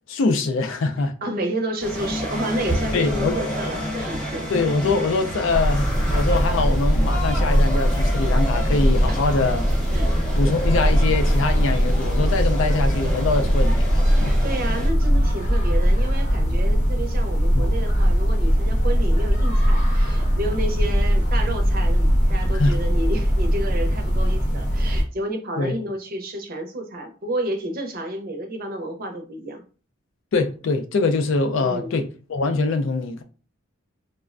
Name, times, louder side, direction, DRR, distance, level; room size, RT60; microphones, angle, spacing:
voice 1, 0.1-1.2 2.9-3.4 4.5-9.7 10.4-14.4 17.5-17.7 22.5-22.8 25.6-25.8 30.3-33.2, left 3 dB, 65° left, 0.4 m, -23 dB
voice 2, 1.2-4.5 9.1-9.2 9.9-10.1 14.1-29.6 31.6-32.0, right 1 dB, 45° right, 0.5 m, -31 dB
sound 1, 1.8-14.9, equal, 5° left, 0.9 m, -30 dB
sound 2, 5.5-25.0, equal, 35° left, 0.7 m, -20 dB
3.2 x 2.0 x 2.4 m
head